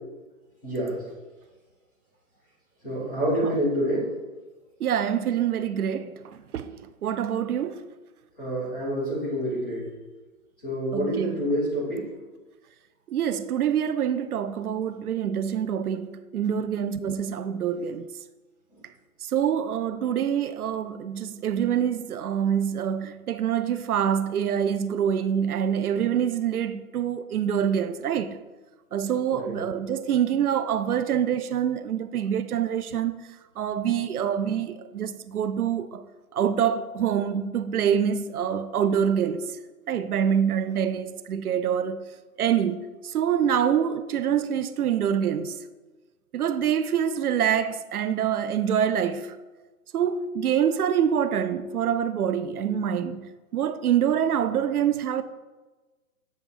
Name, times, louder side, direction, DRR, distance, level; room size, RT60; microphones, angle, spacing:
voice 1, 0.6-1.0 2.8-4.1 8.4-9.9 10.6-12.1 29.3-29.5, equal, ahead, 0.7 m, -27 dB
voice 2, 4.8-6.7 7.0-7.9 10.9-11.4 13.1-18.1 19.2-28.4 28.9-33.3 33.6-36.1 36.3-39.6 39.9-42.0 42.4-45.6 46.3-49.4 49.9-53.2 53.5-55.2, right 8 dB, 80° right, 0.6 m, -26 dB
7.7 x 3.6 x 5.4 m
hypercardioid pair, 165°, 44 cm